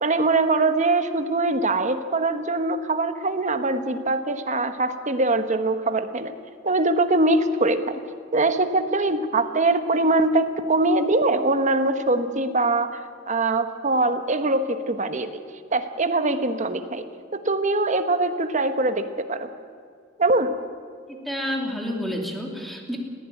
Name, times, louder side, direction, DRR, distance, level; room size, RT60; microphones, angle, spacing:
voice 1, 0.0-6.3 6.6-8.0 8.3-15.4 15.7-17.0 17.3-19.5 20.2-20.5, right 2 dB, 40° right, 9 dB, 1.3 m, -22 dB
voice 2, 21.3-23.0, equal, ahead, 1 dB, 2.9 m, -29 dB
20.0 x 15.0 x 9.2 m, 2.2 s
head